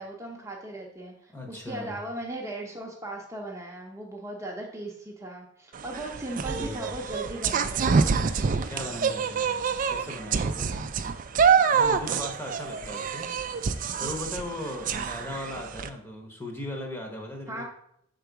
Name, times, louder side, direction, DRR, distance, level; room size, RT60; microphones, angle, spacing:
voice 1, 0.0-8.1 17.5-17.6, right 1 dB, 15° right, -1 dB, 0.7 m, -38 dB
voice 2, 1.3-2.0 6.6-6.8 8.7-9.5 9.9-10.9 11.7-13.3 14.0-17.6, left 1 dB, 10° left, 2 dB, 0.9 m, -37 dB
sound 1, 5.7-15.9, right 6 dB, 40° right, 0.4 m, -26 dB
6.0 x 3.9 x 4.6 m, 0.72 s
head